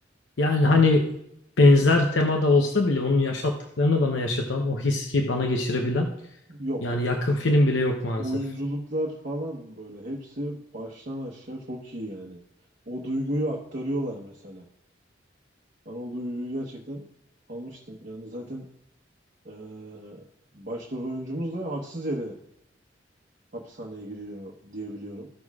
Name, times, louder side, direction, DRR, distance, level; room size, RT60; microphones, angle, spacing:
voice 1, 0.4-1.2 1.6-6.1 6.8-8.2, left 2 dB, 90° left, 2 dB, 0.8 m, -22 dB
voice 2, 6.5-6.8 8.2-12.4 12.9-14.6 15.8-17.1 17.5-18.6 19.4-20.2 20.5-22.4 23.5-25.3, right 1 dB, 50° right, -2 dB, 1.1 m, -33 dB
15.0 x 6.2 x 2.4 m, 0.79 s
head